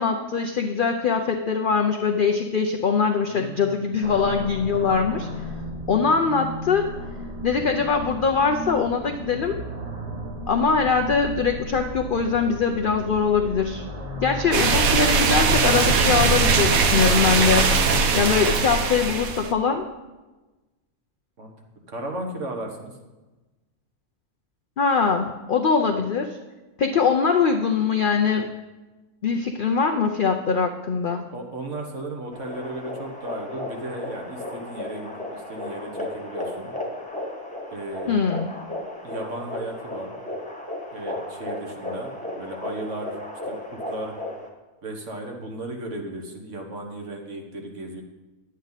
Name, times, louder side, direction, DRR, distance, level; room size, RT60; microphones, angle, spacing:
voice 1, 0.0-5.3 5.9-6.9 7.4-9.6 10.5-13.8 14.2-17.7 18.1-19.8 24.8-26.4 26.8-28.5 29.2-31.2 38.1-38.5, left 5 dB, 60° left, 4 dB, 0.5 m, -22 dB
voice 2, 3.3-3.9 14.4-14.6 18.0-18.2 21.4-21.5 21.9-22.9 25.8-25.9 31.3-36.7 37.7-38.2 39.0-40.1 40.9-43.2 43.5-44.2 44.8-48.0, right 1 dB, 55° right, 2 dB, 1.6 m, -35 dB
sound 1, 4.0-17.1, equal, 30° right, 1.1 m, -35 dB
sound 2, 14.5-19.5, right 4 dB, 70° right, 1.2 m, -20 dB
sound 3, 32.3-44.5, left 1 dB, 5° left, 1.2 m, -35 dB
10.5 x 8.5 x 4.0 m, 1.2 s
omnidirectional pair, 1.5 m